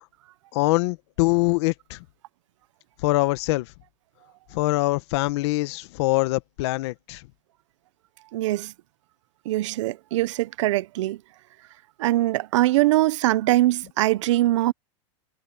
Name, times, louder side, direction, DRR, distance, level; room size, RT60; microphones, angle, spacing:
voice 1, 0.5-2.0 3.0-3.7 4.5-7.2, left 21 dB, 60° left, 1.3 m, -23 dB
voice 2, 8.3-8.7 9.4-11.2 12.0-14.7, right 16 dB, 70° right, 0.8 m, -22 dB
supercardioid pair, 145°, 16 cm